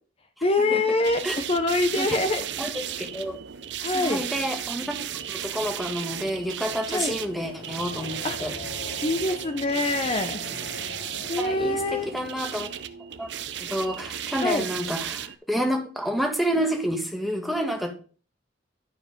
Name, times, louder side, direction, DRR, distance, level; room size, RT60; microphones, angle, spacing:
voice 1, 0.4-2.4 3.8-4.2 6.9-7.2 8.2-8.5 9.0-10.4 11.3-12.0 14.4-14.7, left 2 dB, 30° left, 8 dB, 0.7 m, -25 dB
sound 1, 1.0-15.4, right 10 dB, 70° right, 0.6 m, -35 dB
voice 2, 2.6-3.4 3.9-8.5 11.4-12.7 13.2-13.3 13.6-17.9, equal, ahead, 3 dB, 1.4 m, -29 dB
sound 2, 3.4-14.2, left 3 dB, 75° left, 1.1 m, -45 dB
11.0 x 4.7 x 5.2 m, 0.40 s
head